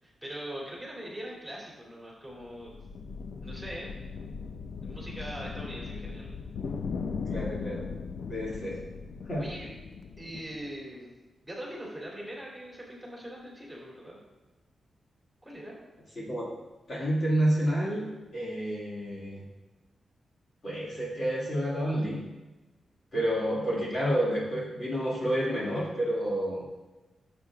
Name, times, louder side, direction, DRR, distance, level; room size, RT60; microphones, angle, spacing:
voice 1, 0.0-2.7 3.4-3.9 4.8-6.3 9.4-9.7 10.2-11.1 11.4-14.2 15.4-15.8, equal, 5° right, -5 dB, 2.9 m, -41 dB
sound 1, 2.3-10.8, left 5 dB, 65° left, 0.5 m, -38 dB
voice 2, 7.3-7.9 8.3-8.8 9.2-9.5 16.2-16.5 16.9-19.4 20.6-22.2 23.1-26.7, right 1 dB, 40° left, -5 dB, 2.0 m, -29 dB
15.0 x 7.7 x 2.4 m, 1.1 s
wide cardioid pair, 160°, 0 cm